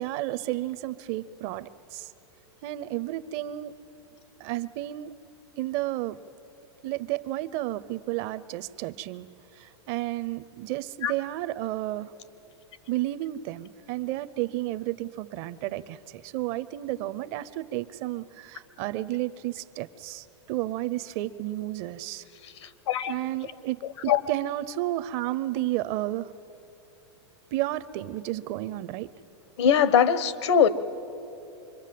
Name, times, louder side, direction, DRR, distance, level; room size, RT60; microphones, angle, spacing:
voice 1, 0.0-2.1 2.6-3.7 4.4-5.1 5.6-6.2 6.8-9.3 9.6-12.1 12.9-22.2 23.1-26.3 27.5-29.1, right 15 dB, 35° right, 15 dB, 0.5 m, -32 dB
voice 2, 22.4-23.1 24.1-24.2 29.6-30.7, left 8 dB, 75° left, 14 dB, 1.1 m, -22 dB
26.0 x 22.0 x 7.6 m, 3.0 s
supercardioid pair, 160°, 14 cm